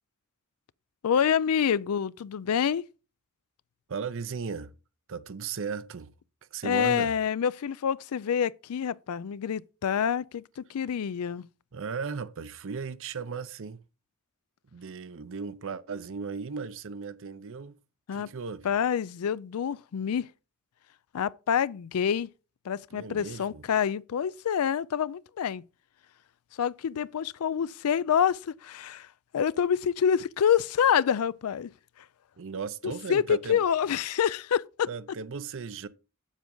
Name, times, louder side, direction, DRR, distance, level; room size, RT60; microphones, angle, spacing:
voice 1, 1.0-2.9 6.6-11.5 18.1-18.3 18.6-20.3 21.1-22.3 22.6-25.6 26.6-29.1 29.3-31.7 32.8-34.9, left 8 dB, 80° left, 0.4 m, -27 dB
voice 2, 3.9-4.7 5.1-6.1 6.5-7.1 11.7-13.8 14.7-17.8 18.1-18.7 22.9-23.6 32.4-33.6 34.9-35.9, right 5 dB, 60° right, 0.6 m, -36 dB
8.1 x 7.3 x 3.8 m
head